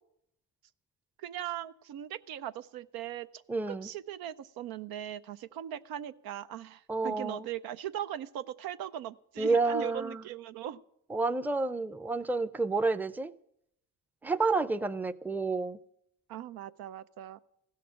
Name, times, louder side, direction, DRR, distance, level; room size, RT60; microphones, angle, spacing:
voice 1, 1.2-3.3 3.7-10.8 16.3-17.4, right 11 dB, 75° right, 0.7 m, -39 dB
voice 2, 3.5-3.9 6.9-7.5 9.4-10.2 11.1-13.3 14.2-15.8, right 3 dB, 5° right, 0.6 m, -30 dB
15.5 x 6.6 x 9.9 m
supercardioid pair, 75°, 36 cm